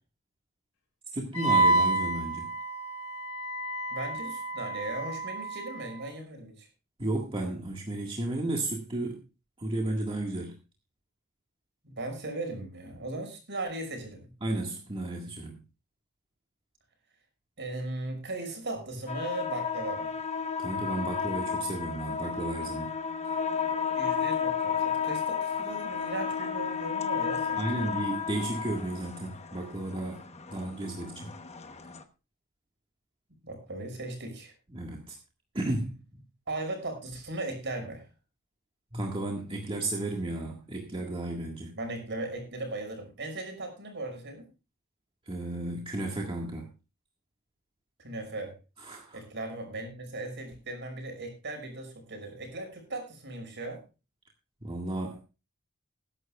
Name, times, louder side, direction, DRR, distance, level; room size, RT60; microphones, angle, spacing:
voice 1, 1.1-2.5 7.0-9.2 9.6-10.5 14.4-15.6 20.6-23.0 23.3-23.4 27.6-30.2 30.5-31.3 34.7-35.2 35.5-36.2 38.9-41.7 45.3-46.7 48.8-49.2 54.6-55.2, right 2 dB, 25° right, 0 dB, 1.8 m, -33 dB
Wind instrument woodwind instrument, 1.3-6.0, right 2 dB, 70° left, 5.2 m, -29 dB
voice 2, 3.9-6.7 11.8-14.3 17.6-20.1 23.9-27.9 33.4-34.5 36.5-38.0 41.8-44.5 48.0-48.5 49.1-53.8, right 2 dB, 55° right, 5 dB, 5.7 m, -37 dB
sound 1, 19.1-32.0, left 6 dB, 30° left, 1.0 m, -32 dB
20.5 x 11.0 x 2.4 m, 0.30 s
head